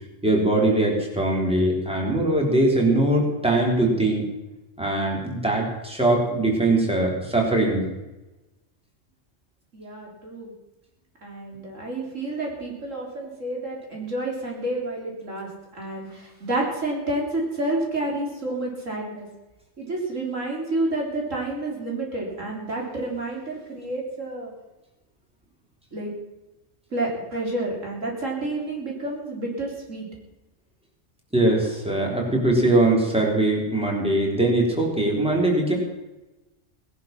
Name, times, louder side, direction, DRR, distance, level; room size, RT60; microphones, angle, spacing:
voice 1, 0.2-4.3 4.8-7.9 31.3-35.8, right 2 dB, 5° right, -1 dB, 3.6 m, -21 dB
voice 2, 9.7-10.5 11.2-19.3 19.8-24.5 25.9-26.1 26.9-30.1, right 2 dB, 85° right, -1 dB, 4.2 m, -29 dB
18.5 x 11.0 x 6.0 m, 1.0 s
omnidirectional pair, 1.3 m